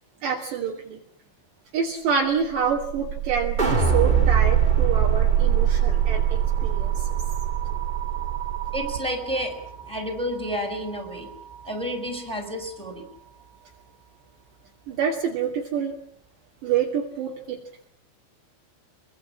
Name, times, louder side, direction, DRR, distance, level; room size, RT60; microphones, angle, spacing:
voice 1, 0.2-1.0 1.7-7.1 14.9-16.0 16.6-17.6, right 7 dB, 60° right, -1 dB, 4.7 m, -27 dB
sound 1, 2.4-12.4, right 11 dB, 85° right, 4.2 m, -25 dB
sound 2, 3.6-9.8 10.2-10.3, right 4 dB, 20° right, 1.4 m, -28 dB
voice 2, 8.7-11.3 11.6-13.1, equal, ahead, 5 dB, 6.6 m, -30 dB
26.0 x 24.0 x 7.7 m, 0.63 s
omnidirectional pair, 5.9 m